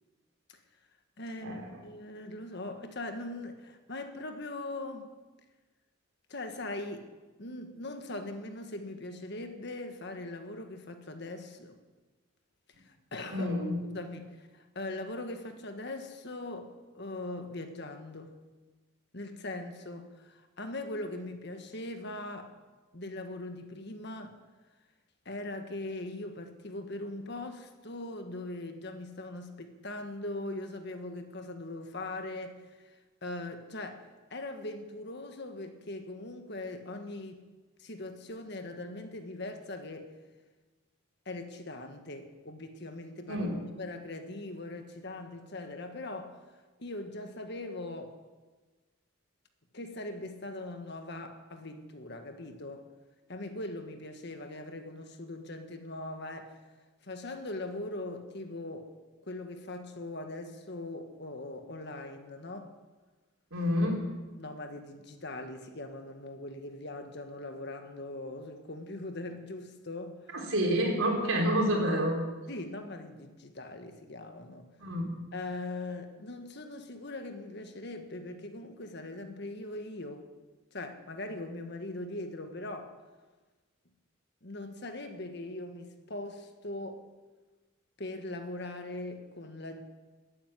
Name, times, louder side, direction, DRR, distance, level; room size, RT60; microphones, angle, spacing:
voice 1, 1.2-5.1 6.3-7.1 7.4-11.8 12.8-13.5 13.9-18.3 19.1-22.5 22.9-24.4 25.2-34.0 34.3-37.4 37.8-40.1 41.2-43.5 43.8-46.4 46.8-48.2 49.7-52.9 53.3-56.6 57.0-58.9 59.2-62.7 64.4-70.3 72.5-74.7 75.3-80.2 80.7-82.9 84.4-87.0 88.0-89.8, left 2 dB, 55° left, 1.6 m, -41 dB
voice 2, 13.3-13.8 43.3-43.6 63.5-64.0 70.3-72.2 74.8-75.0, equal, 80° right, 4.1 m, -28 dB
13.5 x 10.0 x 9.4 m
head